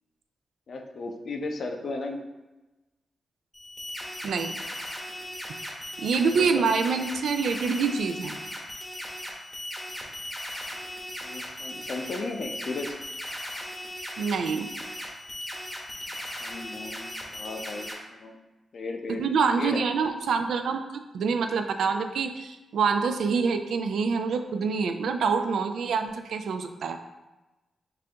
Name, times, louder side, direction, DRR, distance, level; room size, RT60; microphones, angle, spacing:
voice 1, 0.7-2.3 6.4-6.6 11.2-12.9 16.4-18.4 18.7-19.8, left 3 dB, 60° left, 3 dB, 0.5 m, -35 dB
sound 1, 3.5-17.9, left 1 dB, 10° left, 0.8 m, -38 dB
voice 2, 6.0-8.4 14.2-14.7 19.1-20.8 21.1-27.0, right 5 dB, 85° right, 7 dB, 0.3 m, -26 dB
5.5 x 2.5 x 2.8 m, 1.1 s
cardioid pair, 105°, 0 cm